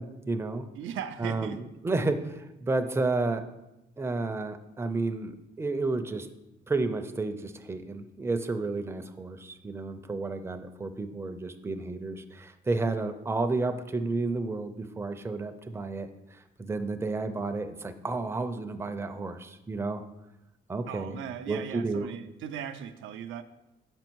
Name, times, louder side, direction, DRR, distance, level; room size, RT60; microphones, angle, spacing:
voice 1, 0.0-0.7 1.2-3.4 4.0-5.3 5.6-6.3 6.7-16.1 16.6-20.0 20.7-21.2 21.5-22.1, right 3 dB, 15° right, 8 dB, 0.5 m, -31 dB
voice 2, 0.8-1.6 20.9-23.4, right 9 dB, 80° right, 9 dB, 0.5 m, -38 dB
5.5 x 5.3 x 4.5 m, 0.95 s
cardioid pair, 90°, 20 cm